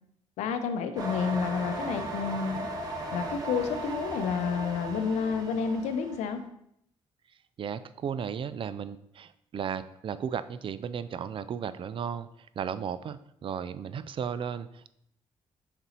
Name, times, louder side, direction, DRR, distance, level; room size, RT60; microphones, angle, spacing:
voice 1, 0.4-2.7 3.1-6.4, left 6 dB, 85° left, 8 dB, 0.6 m, -30 dB
sound 1, 0.9-6.3, right 2 dB, 35° right, 1.4 m, -36 dB
voice 2, 7.6-14.9, right 7 dB, 50° right, 14 dB, 0.4 m, -35 dB
6.0 x 4.1 x 4.0 m, 0.75 s
supercardioid pair, 70°, 11 cm